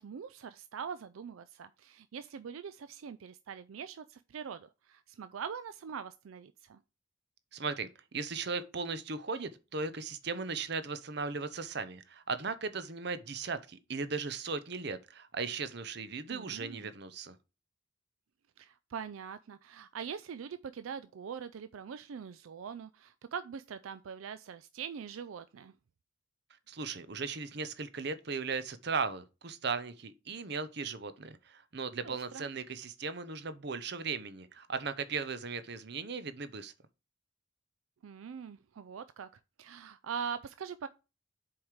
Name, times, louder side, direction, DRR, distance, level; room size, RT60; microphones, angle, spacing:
voice 1, 0.0-6.8 16.3-16.9 18.6-25.7 32.0-32.4 38.0-39.3 39.6-40.9, right 7 dB, 90° right, 0.4 m, -43 dB
voice 2, 7.5-17.4 26.7-36.7, right 4 dB, 55° right, 0.8 m, -37 dB
7.1 x 4.8 x 4.9 m
head